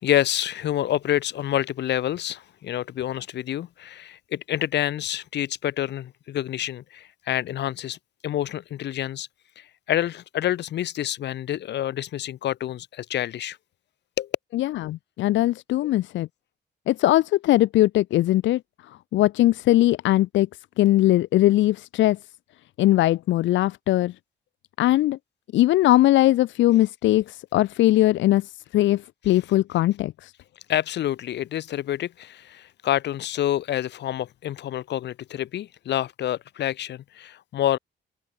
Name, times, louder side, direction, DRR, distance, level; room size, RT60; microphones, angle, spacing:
voice 1, 0.0-9.3 9.6-13.6 14.2-14.3 30.7-37.8, left 12 dB, 65° left, 6.3 m, -28 dB
voice 2, 14.5-16.3 16.9-18.6 19.1-20.5 20.8-22.2 22.8-24.1 24.8-25.2 25.5-30.3, left 15 dB, 90° left, 1.0 m, -20 dB
cardioid pair, 165°, 19 cm